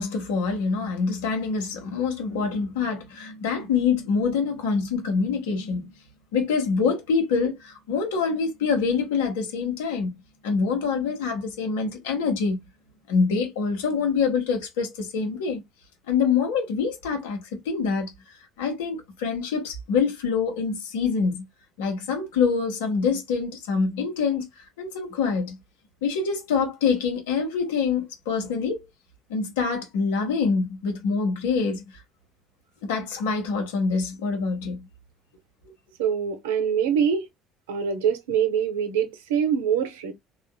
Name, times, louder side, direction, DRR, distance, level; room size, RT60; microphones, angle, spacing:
voice 1, 0.0-5.9 6.3-10.2 10.4-12.6 13.1-15.6 16.1-18.1 18.6-21.5 21.8-25.6 26.0-28.8 29.3-31.8 32.8-34.9, left 5 dB, 75° left, 1.0 m, -25 dB
voice 2, 36.0-37.3 37.7-40.1, right 8 dB, 75° right, 0.6 m, -24 dB
3.6 x 2.4 x 2.3 m
hypercardioid pair, 60°, 0 cm